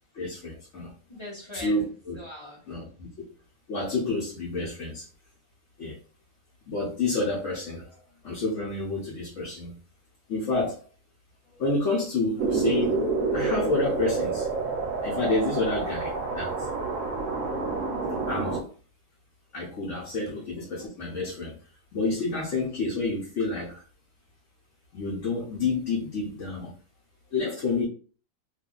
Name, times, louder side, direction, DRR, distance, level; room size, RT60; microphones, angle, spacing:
voice 1, 0.1-0.9 1.5-2.2 2.7-3.1 3.7-5.1 5.8-6.0 6.7-8.0 8.2-9.7 10.3-10.9 11.5-13.0 13.3-14.5 15.0-16.7 18.3-18.6 19.5-21.5 21.9-23.8 24.9-26.7 27.3-27.9, left 3 dB, 50° left, -4 dB, 1.1 m, -29 dB
voice 2, 1.1-2.6, left 1 dB, 20° left, -3 dB, 0.8 m, -41 dB
sound 1, 12.4-18.6, right 4 dB, 60° right, 0.9 m, -28 dB
2.7 x 2.6 x 3.8 m, 0.41 s
omnidirectional pair, 1.8 m